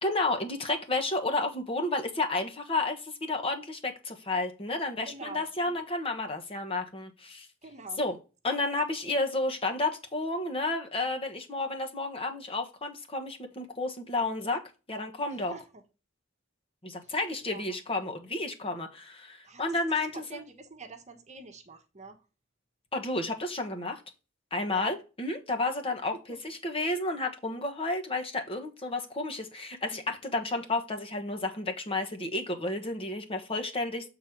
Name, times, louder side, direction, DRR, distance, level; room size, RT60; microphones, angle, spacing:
voice 1, 0.0-7.5 8.0-8.2 8.4-14.6 14.9-15.5 16.8-20.4 22.9-24.0 24.5-26.2 26.4-34.1, left 2 dB, 30° left, 1.2 m, -31 dB
voice 2, 5.0-5.8 7.6-8.0 15.5-15.8 17.0-17.1 17.4-17.6 19.4-19.6 20.0-22.2 24.7-24.9 26.3-26.4, right 3 dB, 35° right, 1.1 m, -46 dB
7.3 x 4.0 x 4.5 m
head